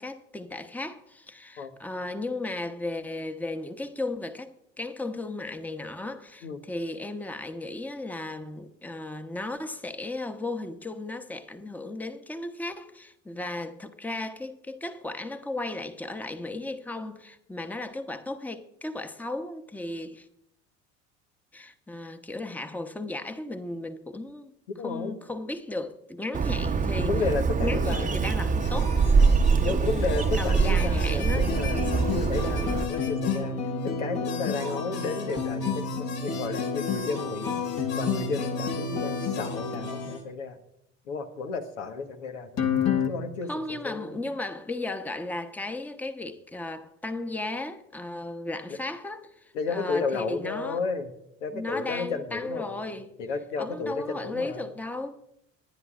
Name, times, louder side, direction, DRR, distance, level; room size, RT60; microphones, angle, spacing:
voice 1, 0.0-20.3 21.5-24.5 24.8-27.2 27.6-29.0 29.6-29.9 30.4-32.1 43.5-50.8 51.5-53.1 53.6-55.2, left 2 dB, 5° left, 1.0 m, -35 dB
voice 2, 24.8-25.2 27.0-28.1 29.5-33.6 33.8-37.6 37.9-40.6 41.1-42.6 43.1-44.2 49.5-51.1 51.4-54.7, left 4 dB, 80° left, 1.4 m, -32 dB
Bird, 26.3-32.8, right 5 dB, 20° right, 0.9 m, -24 dB
sound 1, 28.6-33.4 33.8-33.9 34.2-40.2, left 4 dB, 60° left, 4.9 m, -41 dB
sound 2, 31.3-40.2 42.6-43.1, left 5 dB, 45° left, 1.6 m, -30 dB
25.5 x 10.0 x 2.5 m
hypercardioid pair, 75°, 37 cm